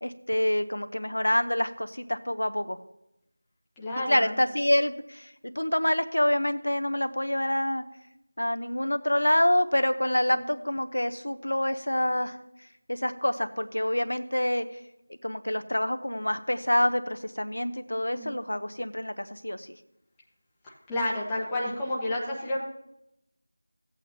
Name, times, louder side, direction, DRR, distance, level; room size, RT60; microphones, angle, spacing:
voice 1, 0.0-2.8 4.1-7.8 8.4-12.4 12.9-14.7 15.2-19.7, left 1 dB, 90° left, 9 dB, 0.8 m, -27 dB
voice 2, 3.8-4.4 10.3-10.5 18.1-18.4 20.6-22.6, left 1 dB, 5° left, -6 dB, 1.1 m, -31 dB
15.5 x 8.2 x 2.9 m, 0.84 s
figure-of-eight pair, 175°, 0 cm